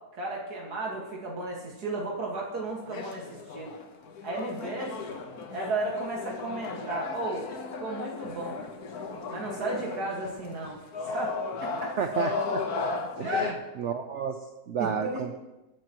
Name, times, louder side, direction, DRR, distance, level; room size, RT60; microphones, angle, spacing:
voice 1, 0.1-3.8 4.2-5.2 5.5-7.5 7.8-8.6 9.3-10.8 11.0-12.0 13.2-13.5 14.8-15.3, right 2 dB, 90° right, -2 dB, 2.5 m, -34 dB
sound 1, 2.6-13.5, left 4 dB, 75° left, 1.7 m, -35 dB
voice 2, 12.0-12.6 13.2-14.4 14.7-15.3, right 7 dB, 60° right, 6 dB, 0.9 m, -31 dB
21.0 x 12.0 x 3.1 m, 1.0 s
omnidirectional pair, 1.6 m